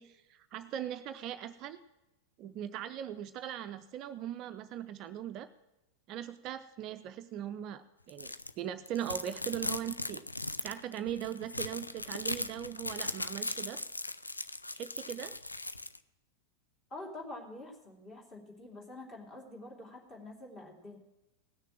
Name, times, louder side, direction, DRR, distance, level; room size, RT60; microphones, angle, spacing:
voice 1, 0.0-1.8 2.4-5.5 6.1-10.3 10.6-13.8 14.7-15.3, right 10 dB, 40° right, 10 dB, 0.5 m, -40 dB
sound 1, 8.1-8.5 8.9-16.0, left 2 dB, 85° left, 0.4 m, -38 dB
voice 2, 16.9-21.0, left 2 dB, 25° left, 0 dB, 3.1 m, -46 dB
17.0 x 6.6 x 7.6 m, 0.97 s
figure-of-eight pair, 90°, 0 cm